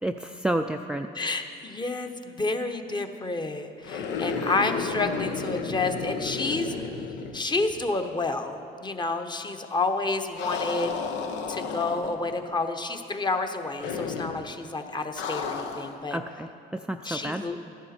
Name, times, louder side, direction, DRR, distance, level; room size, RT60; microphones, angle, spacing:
voice 1, 0.0-1.1 16.1-17.4, right 1 dB, 5° right, 5 dB, 0.4 m, -30 dB
voice 2, 1.1-6.9 7.3-10.9 11.5-16.2 17.0-17.8, left 3 dB, 25° left, 6 dB, 1.0 m, -30 dB
sound 1, 3.8-8.0 8.2-8.3 10.4-12.4 13.8-14.5 15.2-16.0, left 5 dB, 80° left, 0.8 m, -32 dB
13.5 x 11.0 x 4.4 m, 2.6 s
supercardioid pair, 70°, 18 cm